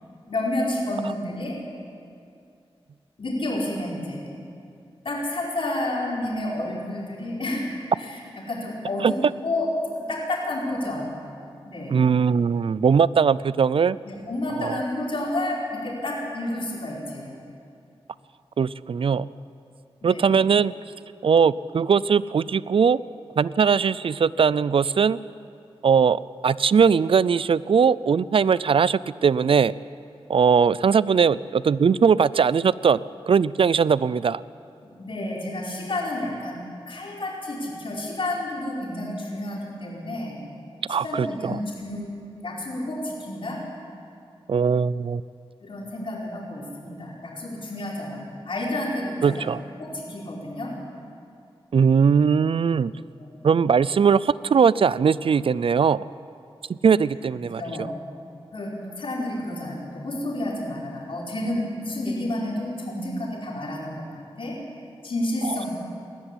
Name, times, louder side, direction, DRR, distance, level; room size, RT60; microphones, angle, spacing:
voice 1, 0.3-1.6 3.2-4.3 5.0-7.7 8.0-8.2 8.4-9.7 10.1-11.1 11.6-12.0 14.0-17.4 20.0-20.4 34.8-36.6 36.9-40.4 40.9-42.1 42.4-43.6 45.6-49.5 49.8-50.7 53.1-53.5 57.6-57.9 58.5-64.6 65.0-65.7, left 1 dB, 60° left, -4 dB, 4.8 m, -30 dB
voice 2, 11.9-14.0 14.6-14.8 18.6-19.3 20.0-20.7 21.2-23.0 23.4-25.2 25.8-29.7 30.3-33.0 33.3-34.4 40.9-41.5 44.5-45.2 49.2-49.6 51.7-52.9 53.4-56.0 56.7-57.9 65.4-65.6, right 6 dB, 65° right, 19 dB, 0.4 m, -20 dB
20.0 x 13.0 x 10.0 m, 2.5 s
wide cardioid pair, 75°, 10 cm